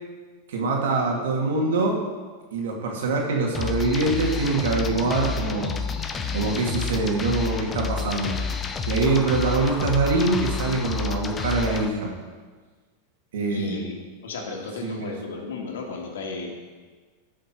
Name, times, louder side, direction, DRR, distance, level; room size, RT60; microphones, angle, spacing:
voice 1, 0.5-2.0 2.5-5.7 6.3-8.4 8.9-12.1 13.3-13.8 14.8-15.1, right 3 dB, 85° right, -1 dB, 2.6 m, -24 dB
sound 1, 3.5-11.9, left 6 dB, 20° left, 0.8 m, -29 dB
voice 2, 13.5-13.9 14.2-16.5, left 3 dB, 90° left, 0 dB, 2.3 m, -34 dB
14.5 x 6.4 x 4.7 m, 1.4 s
supercardioid pair, 145°, 0 cm